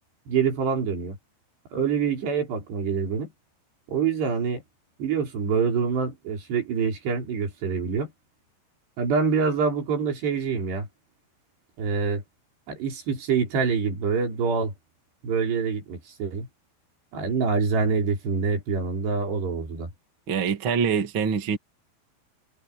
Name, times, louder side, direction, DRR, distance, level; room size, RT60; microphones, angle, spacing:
voice 1, 0.3-1.2 1.7-3.3 3.9-4.6 5.0-8.1 9.0-10.9 11.8-12.2 12.7-14.7 15.2-16.5 17.1-19.9, right 5 dB, 55° right, 6.6 m, -25 dB
voice 2, 20.3-21.6, right 6 dB, 40° right, 1.9 m, -24 dB
omnidirectional pair, 5.8 m